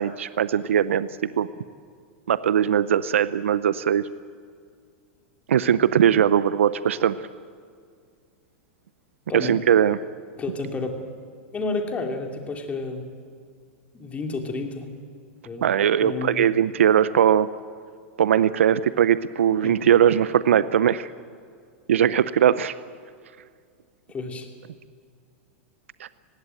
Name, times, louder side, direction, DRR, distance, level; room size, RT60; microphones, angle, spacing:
voice 1, 0.0-1.5 2.3-4.1 5.5-7.2 9.3-10.0 15.6-17.5 18.2-21.1 21.9-22.8 26.0-26.1, right 9 dB, 85° right, 16 dB, 0.6 m, -20 dB
voice 2, 10.4-10.9 11.5-13.0 13.9-14.9 15.4-15.7 16.0-16.4 19.6-19.8 24.1-24.5, left 3 dB, 20° left, 3 dB, 2.9 m, -30 dB
18.5 x 16.5 x 9.1 m, 2.1 s
hypercardioid pair, 120°, 7 cm